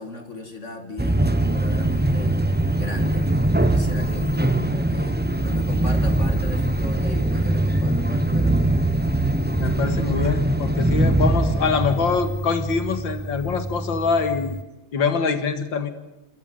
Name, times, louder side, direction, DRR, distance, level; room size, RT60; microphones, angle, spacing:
voice 1, 0.0-2.4 2.7-3.3 3.6-5.2 5.4-8.9, left 2 dB, 35° left, 6 dB, 2.6 m, -36 dB
sound 1, 1.0-14.6, right 1 dB, 10° right, 0.4 m, -22 dB
voice 2, 9.6-14.6 14.9-15.9, left 5 dB, 70° left, 10 dB, 2.6 m, -24 dB
27.0 x 14.0 x 9.3 m, 0.98 s
omnidirectional pair, 2.2 m